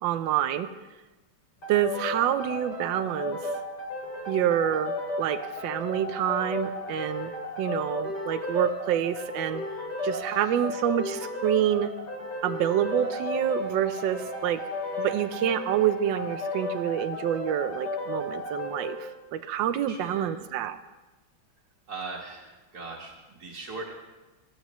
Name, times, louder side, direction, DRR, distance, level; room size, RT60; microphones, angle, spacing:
voice 1, 0.0-0.7 1.7-3.4 4.3-7.3 7.6-9.6 10.0-11.9 12.4-14.6 15.0-20.8, right 10 dB, 75° right, 10 dB, 1.3 m, -27 dB
sound 1, 1.6-19.0, left 2 dB, 60° left, 3.3 m, -34 dB
voice 2, 10.2-10.6 15.0-15.3 19.4-19.6 19.9-20.4 21.9-23.9, right 3 dB, 55° right, -5 dB, 2.0 m, -40 dB
sound 2, 13.0-17.2, left 1 dB, 10° right, 2.5 m, -49 dB
20.0 x 13.0 x 3.1 m, 1.1 s
omnidirectional pair, 2.1 m